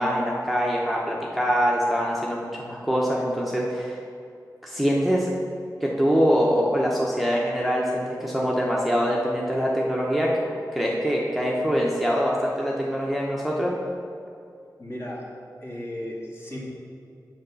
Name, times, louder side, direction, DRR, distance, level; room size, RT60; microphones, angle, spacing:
voice 1, 0.0-4.0 4.6-5.3 5.8-10.3 10.7-13.7, equal, ahead, -4 dB, 0.9 m, -24 dB
voice 2, 14.8-15.3 15.6-16.6, left 1 dB, 35° left, -4 dB, 1.9 m, -35 dB
6.6 x 4.8 x 6.8 m, 2.4 s
wide cardioid pair, 80°, 7 cm